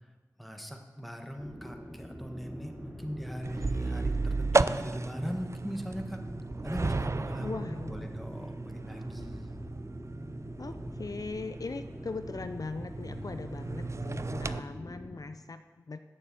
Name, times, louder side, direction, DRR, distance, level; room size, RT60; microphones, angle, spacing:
voice 1, 0.4-6.2 6.6-7.6 7.9-9.6, equal, ahead, 3 dB, 1.3 m, -40 dB
sound 1, 1.4-15.1, equal, 20° right, 3.4 m, -44 dB
sound 2, 3.4-14.6, right 3 dB, 45° right, 0.4 m, -34 dB
voice 2, 7.4-8.1 10.6-16.0, left 3 dB, 65° left, 9 dB, 0.4 m, -40 dB
8.5 x 6.8 x 7.5 m, 1.4 s
wide cardioid pair, 45°, 7 cm